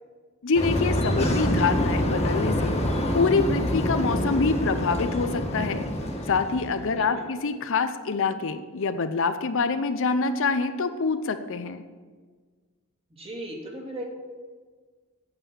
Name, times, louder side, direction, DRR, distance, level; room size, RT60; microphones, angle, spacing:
voice 1, 0.4-2.8 3.1-5.9 6.3-11.8, left 4 dB, 65° left, 10 dB, 0.7 m, -26 dB
sound 1, 0.5-7.0, left 1 dB, 30° left, 1.5 m, -26 dB
voice 2, 6.9-7.2 13.1-14.1, right 1 dB, 25° right, -1 dB, 2.3 m, -37 dB
8.8 x 7.6 x 8.3 m, 1.5 s
head